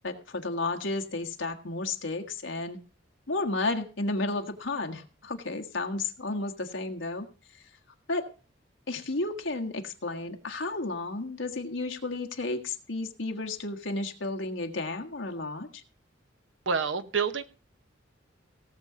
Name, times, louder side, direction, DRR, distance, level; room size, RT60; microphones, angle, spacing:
voice 1, 0.0-2.8 3.3-7.3 7.5-7.6 8.1-8.2 8.9-15.8, left 2 dB, 80° left, 1.6 m, -32 dB
voice 2, 16.7-17.4, right 5 dB, 80° right, 1.0 m, -27 dB
17.5 x 7.0 x 5.0 m
head